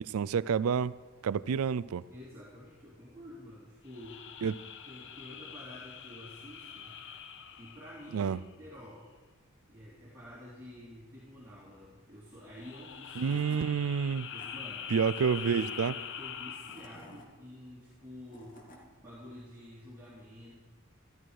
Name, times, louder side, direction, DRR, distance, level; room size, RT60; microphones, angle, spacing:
voice 1, 0.1-0.9 1.2-2.0 4.4-4.5 8.1-8.4 13.2-14.3 14.9-15.9, right 6 dB, 70° right, 0.4 m, -29 dB
voice 2, 2.1-4.2 4.9-7.0 7.6-9.1 9.7-13.4 14.3-18.6 19.0-20.7, left 1 dB, 10° right, 2.5 m, -49 dB
sound 1, 3.9-8.7 12.5-17.2, left 8 dB, 60° left, 0.7 m, -44 dB
Tools / Wood, 12.7-12.8 13.1-13.7 14.1-14.5 15.2-15.8 16.5-17.3 18.0-18.8, left 1 dB, 40° left, 2.1 m, -53 dB
13.5 x 12.5 x 4.7 m
head